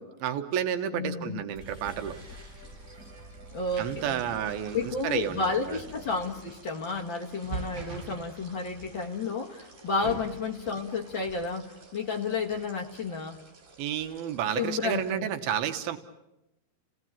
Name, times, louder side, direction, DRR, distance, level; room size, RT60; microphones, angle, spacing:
voice 1, 0.0-2.2 3.8-5.8 10.0-10.2 13.8-16.0, right 9 dB, 85° right, 8 dB, 3.0 m, -31 dB
voice 2, 0.9-1.4 3.5-4.2 4.7-13.4 14.5-15.3, left 4 dB, 65° left, 2 dB, 1.1 m, -31 dB
sound 1, 1.5-6.5, right 1 dB, 20° right, 5.9 m, -48 dB
sound 2, 1.5-15.1, right 4 dB, 50° right, 5.6 m, -47 dB
30.0 x 17.5 x 8.7 m, 0.93 s
omnidirectional pair, 4.3 m